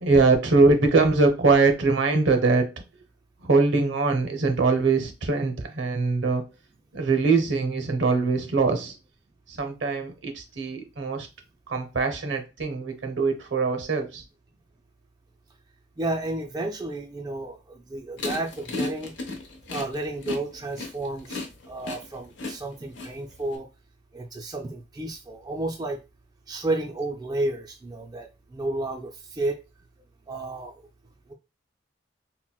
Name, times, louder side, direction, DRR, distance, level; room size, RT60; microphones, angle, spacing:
voice 1, 0.0-2.7 3.4-6.4 6.9-8.9 9.5-11.3 11.7-14.2, right 3 dB, 75° right, 0.7 m, -22 dB
voice 2, 16.0-19.1 19.7-23.7 24.1-26.0 26.5-29.6 30.3-30.9, right 2 dB, 20° right, 0.3 m, -32 dB
sound 1, 18.2-23.6, left 3 dB, 75° left, 0.8 m, -34 dB
3.9 x 2.1 x 2.2 m
head